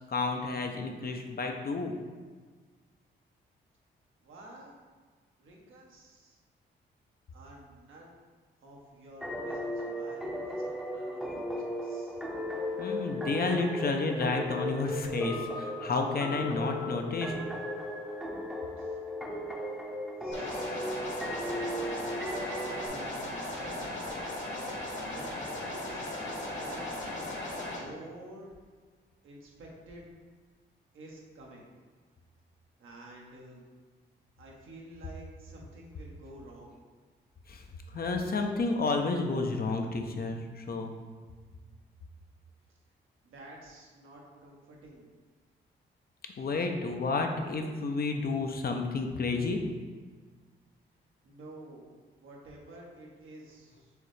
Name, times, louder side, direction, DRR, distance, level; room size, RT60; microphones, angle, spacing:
voice 1, 0.0-2.0 12.8-17.4 37.5-37.6 37.9-40.9 46.4-49.6, left 3 dB, 45° left, 4 dB, 0.6 m, -31 dB
voice 2, 4.2-4.7 5.4-6.4 7.3-8.2 8.6-12.2 18.8-19.0 20.2-21.1 22.8-24.1 24.8-27.4 27.7-28.5 29.2-30.1 30.9-31.7 32.8-33.7 34.4-36.8 43.2-45.1 51.2-51.9 52.2-53.9, right 1 dB, 75° right, -2 dB, 1.0 m, -50 dB
sound 1, 9.2-22.9, equal, ahead, 0.7 m, -36 dB
sound 2, 20.3-27.8, left 1 dB, 60° left, 1.5 m, -37 dB
4.8 x 3.1 x 3.2 m, 1.5 s
supercardioid pair, 55°, 21 cm